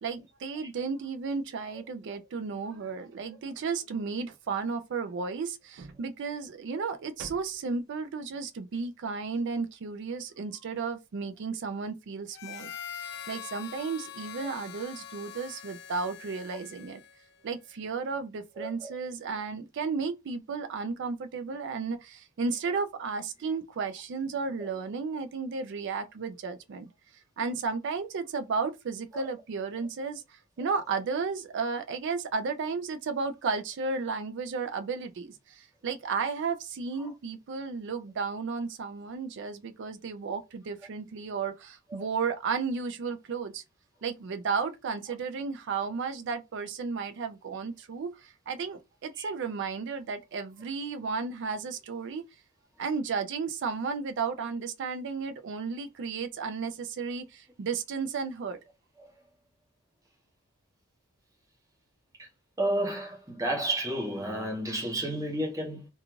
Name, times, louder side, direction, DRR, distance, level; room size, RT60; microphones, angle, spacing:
voice 1, 0.0-17.0 17.4-26.9 27.4-43.6 44.0-52.2 52.8-58.6, right 5 dB, 55° right, 0.4 m, -33 dB
Harmonica, 12.3-17.3, left 9 dB, 50° left, 0.4 m, -43 dB
voice 2, 18.6-18.9 24.6-24.7 29.1-29.2 49.2-49.3 62.2-62.3 62.6-65.9, right 1 dB, 15° right, 0.8 m, -31 dB
2.4 x 2.3 x 3.0 m
head